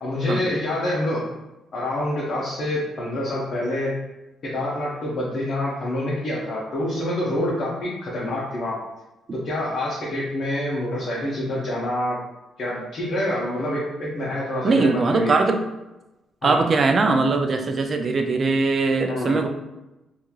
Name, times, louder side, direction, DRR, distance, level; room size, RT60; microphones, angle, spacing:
voice 1, 0.0-1.2 1.7-4.0 4.4-8.8 9.3-12.2 12.6-15.3 16.4-16.7 19.1-19.4, left 1 dB, 55° left, -6 dB, 0.6 m, -26 dB
voice 2, 14.6-15.6 16.4-19.5, right 3 dB, 45° right, 5 dB, 0.3 m, -20 dB
2.9 x 2.4 x 2.3 m, 1.0 s
cardioid pair, 90°, 0 cm